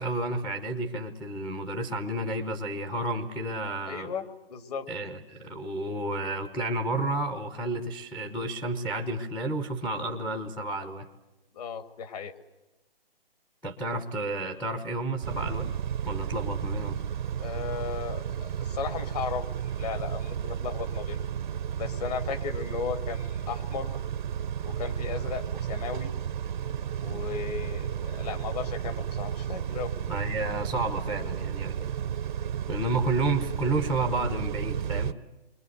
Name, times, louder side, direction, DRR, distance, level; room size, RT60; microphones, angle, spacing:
voice 1, 0.0-4.1 4.9-11.1 13.6-15.7 16.1-17.0 30.1-32.0 32.7-35.2, right 2 dB, 5° left, 6 dB, 0.8 m, -31 dB
voice 2, 3.9-4.2 4.5-4.9 11.5-12.3 17.4-21.2 21.8-23.9 24.6-26.1 27.0-29.9, left 6 dB, 40° left, 8 dB, 2.1 m, -35 dB
Car / Idling / Accelerating revving vroom, 15.2-35.1, right 9 dB, 50° right, 0.8 m, -33 dB
29.5 x 24.0 x 7.9 m, 1.1 s
hypercardioid pair, 150°, 30 cm